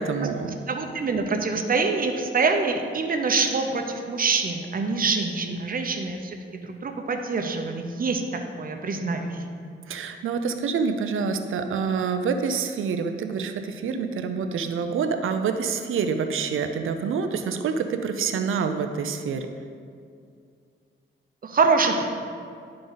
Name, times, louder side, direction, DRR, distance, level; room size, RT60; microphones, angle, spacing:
voice 1, 0.0-0.6 5.4-5.6 9.9-19.5, right 5 dB, 90° right, 7 dB, 0.6 m, -27 dB
voice 2, 0.7-8.2 8.6-9.4 21.4-22.0, right 4 dB, 45° right, 4 dB, 0.8 m, -25 dB
11.0 x 3.8 x 3.9 m, 2.3 s
cardioid pair, 95°, 20 cm